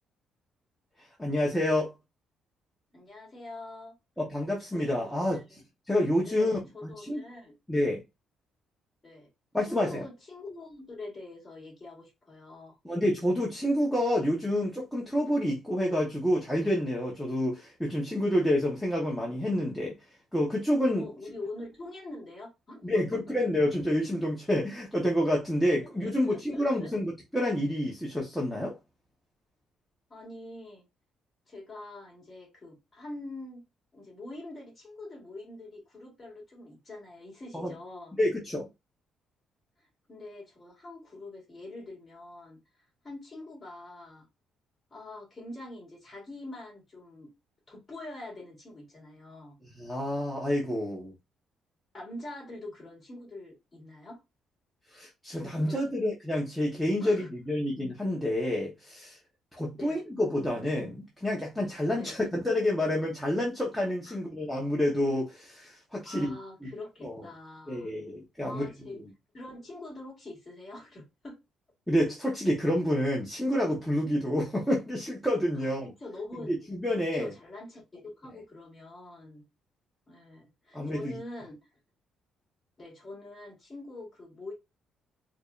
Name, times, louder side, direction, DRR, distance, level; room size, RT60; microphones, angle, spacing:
voice 1, 1.2-1.9 4.2-5.6 5.9-6.5 6.8-7.2 7.7-8.0 9.5-10.0 12.8-19.9 20.3-21.0 22.8-28.7 37.5-37.7 38.2-38.7 49.7-51.1 54.9-59.2 59.5-66.4 67.0-67.2 67.7-68.7 68.9-69.0 71.9-75.9 76.4-77.3 80.7-81.2, left 1 dB, ahead, 0.8 m, -28 dB
voice 2, 2.9-3.9 4.7-5.6 6.2-7.6 9.0-9.3 9.7-12.8 21.0-23.2 26.0-26.9 30.1-30.8 31.5-33.6 33.9-38.2 40.1-42.6 43.0-44.3 44.9-47.3 47.7-49.6 51.9-54.2 55.6-55.8 57.0-57.3 59.8-60.0 61.9-62.2 64.1-64.2 66.0-67.9 68.4-69.0 69.3-71.4 75.6-76.5 77.1-79.4 80.1-81.6 82.8-84.5, left 2 dB, 20° left, 2.4 m, -44 dB
4.7 x 2.5 x 2.4 m
cardioid pair, 180°, 0 cm